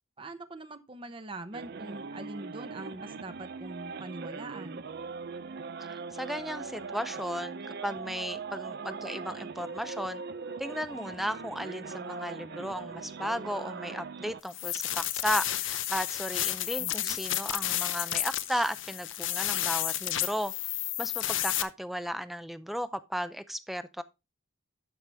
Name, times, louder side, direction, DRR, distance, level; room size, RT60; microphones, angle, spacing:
voice 1, 0.2-4.8 16.8-17.2, right 2 dB, 25° right, 0.8 m, -43 dB
sound 1, 1.5-14.4, right 4 dB, 50° right, 0.5 m, -40 dB
voice 2, 5.9-10.2 10.6-20.5 21.0-24.0, equal, ahead, 0.5 m, -35 dB
sound 2, 14.5-21.6, left 13 dB, 65° left, 0.7 m, -31 dB
12.0 x 6.6 x 3.4 m
head